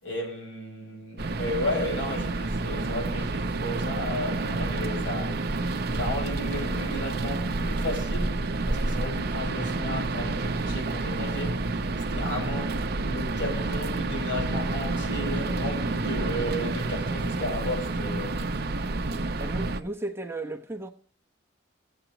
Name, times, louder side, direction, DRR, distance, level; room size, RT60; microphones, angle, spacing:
voice 1, 0.0-8.4 8.7-11.7 12.1-18.5, left 1 dB, 80° left, 5.2 m, -34 dB
sound 1, 1.2-19.8, right 2 dB, 55° right, 0.7 m, -29 dB
voice 2, 19.4-20.9, right 2 dB, 15° right, 0.9 m, -35 dB
17.5 x 7.9 x 3.0 m
head